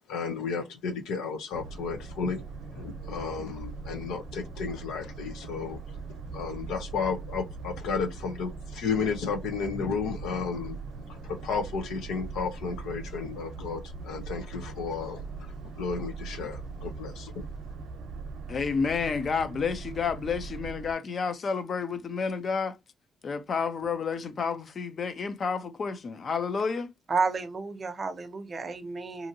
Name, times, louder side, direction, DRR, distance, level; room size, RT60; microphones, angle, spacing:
voice 1, 0.1-2.4 2.7-5.8 6.3-10.8 11.1-15.2 15.8-17.4, left 5 dB, 85° left, 0.8 m, -33 dB
Boat Water vehicle, 1.5-20.9, right 4 dB, 80° right, 0.7 m, -41 dB
voice 2, 18.5-22.8 23.2-26.9, left 5 dB, 45° left, 0.6 m, -30 dB
voice 3, 27.1-29.3, right 4 dB, 35° right, 0.6 m, -31 dB
2.7 x 2.6 x 2.7 m
cardioid pair, 90°, 0 cm